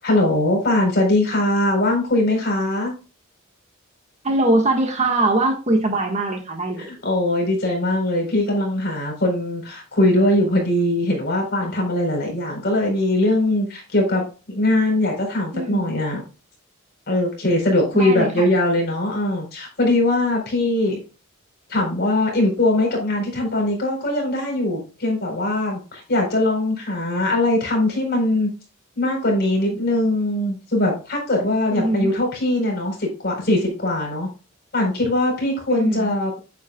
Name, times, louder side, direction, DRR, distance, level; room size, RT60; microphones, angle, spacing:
voice 1, 0.0-2.9 6.8-16.2 17.1-21.0 21.7-28.5 29.0-34.3 34.7-36.4, left 1 dB, 50° left, 2 dB, 4.3 m, -21 dB
voice 2, 4.2-6.9 15.5-16.0 18.0-18.5 31.7-32.1 35.7-36.2, right 2 dB, 30° right, 3 dB, 1.6 m, -22 dB
9.1 x 8.7 x 2.3 m, 0.33 s
head